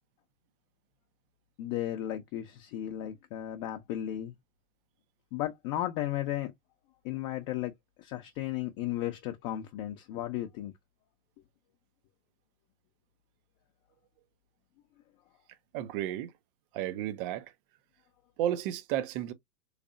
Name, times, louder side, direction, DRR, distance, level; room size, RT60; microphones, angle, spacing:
voice 1, 1.6-4.3 5.3-6.5 7.0-7.7 8.0-10.7, left 13 dB, 35° left, 0.7 m, -34 dB
voice 2, 15.7-16.3 16.7-17.5 18.4-19.3, right 12 dB, 40° right, 0.7 m, -32 dB
3.4 x 3.3 x 2.5 m
hypercardioid pair, 110°, 42 cm